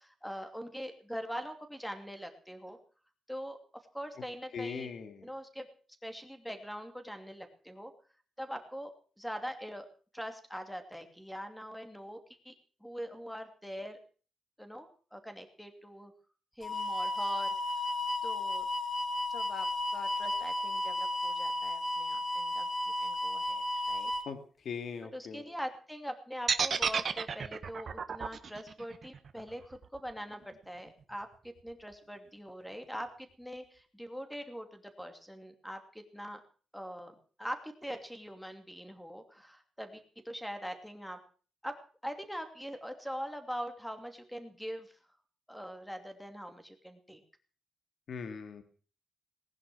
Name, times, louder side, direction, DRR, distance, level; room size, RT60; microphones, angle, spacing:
voice 1, 0.0-2.8 3.3-4.9 5.2-5.7 6.0-7.9 8.4-8.9 9.2-9.9 10.1-12.2 12.4-12.5 12.8-14.0 14.6-16.1 16.6-17.8 18.2-18.7 19.3-22.7 23.0-24.1 25.1-36.4 36.7-41.2 41.6-41.8 42.0-45.0 45.5-47.2, equal, ahead, 6 dB, 2.7 m, -43 dB
voice 2, 4.5-5.2 24.2-24.4 24.6-25.4 48.1-48.6, left 6 dB, 55° left, 7 dB, 2.4 m, -40 dB
sound 1, 16.6-24.2, left 1 dB, 25° left, 2.7 m, -33 dB
sound 2, 26.5-30.5, right 6 dB, 40° right, 1.5 m, -32 dB
19.5 x 11.0 x 6.2 m, 0.41 s
wide cardioid pair, 165°, 0 cm